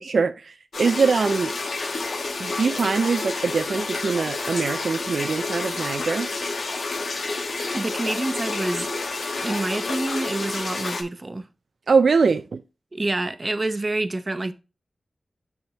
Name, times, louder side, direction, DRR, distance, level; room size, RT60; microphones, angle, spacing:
voice 1, 0.1-1.5 2.4-6.3 11.9-12.6, right 5 dB, 75° right, 0.4 m, -22 dB
sound 1, 0.7-11.0, left 3 dB, 75° left, 1.2 m, -29 dB
voice 2, 7.7-8.9 9.2-11.5 12.9-14.5, right 2 dB, 35° right, 0.7 m, -27 dB
10.5 x 3.5 x 2.8 m
wide cardioid pair, 75°, 0 cm